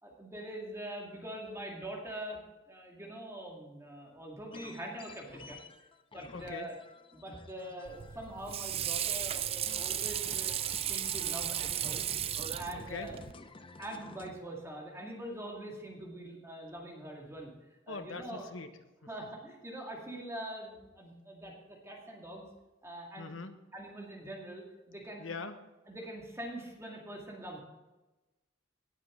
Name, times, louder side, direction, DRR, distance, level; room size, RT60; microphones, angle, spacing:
voice 1, 0.0-2.4 2.7-5.6 6.1-6.7 7.1-10.5 10.9-12.1 12.5-13.2 13.8-17.5 17.9-18.4 19.1-22.5 22.8-23.3 23.7-25.3 25.9-27.6, right 1 dB, 15° right, -1 dB, 2.3 m, -43 dB
sound 1, 4.5-8.6 8.9-14.3, left 3 dB, 25° left, 0.6 m, -52 dB
voice 2, 6.3-6.7 12.7-13.1 17.9-18.8 23.2-23.5 25.2-25.6, left 4 dB, 85° left, 8 dB, 1.2 m, -42 dB
Water / Sink (filling or washing), 7.8-13.3, right 10 dB, 30° right, 0.4 m, -35 dB
18.5 x 7.3 x 3.9 m, 1.1 s
head